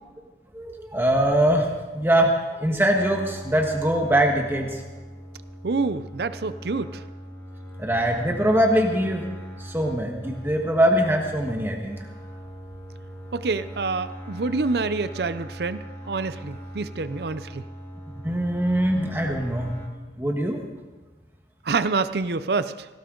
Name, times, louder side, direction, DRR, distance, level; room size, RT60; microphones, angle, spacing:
voice 1, 0.5-4.8 7.8-9.3 9.6-12.0 18.2-19.7 20.2-20.6, right 1 dB, 15° right, 1 dB, 1.4 m, -22 dB
sound 1, 3.0-19.9, equal, 15° left, 1.5 m, -40 dB
voice 2, 5.6-7.0 13.3-17.6 21.6-22.9, right 4 dB, 65° right, 13 dB, 0.6 m, -27 dB
18.0 x 16.5 x 3.9 m, 1.3 s
head